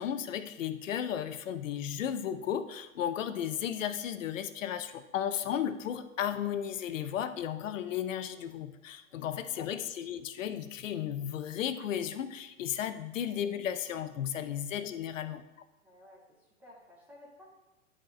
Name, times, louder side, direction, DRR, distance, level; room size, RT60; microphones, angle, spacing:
voice 1, 0.0-15.4, left 9 dB, 60° left, 11 dB, 0.8 m, -34 dB
voice 2, 9.0-9.7 14.4-14.5 15.8-17.5, left 1 dB, 5° right, -6 dB, 0.4 m, -57 dB
10.5 x 4.4 x 5.1 m, 1.0 s
hypercardioid pair, 150°, 43 cm